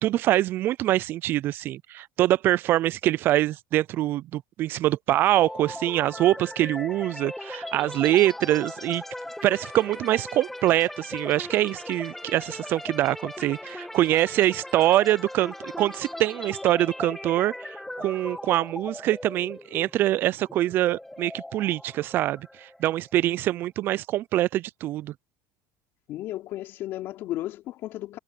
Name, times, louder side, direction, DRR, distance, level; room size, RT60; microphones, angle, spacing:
voice 1, 0.0-9.0 9.4-25.1, right 14 dB, 50° right, 0.4 m, -24 dB
sound 1, 5.4-23.1, left 1 dB, 5° left, 1.4 m, -39 dB
voice 2, 26.1-28.2, left 14 dB, 55° left, 3.7 m, -34 dB
supercardioid pair, 115°, 5 cm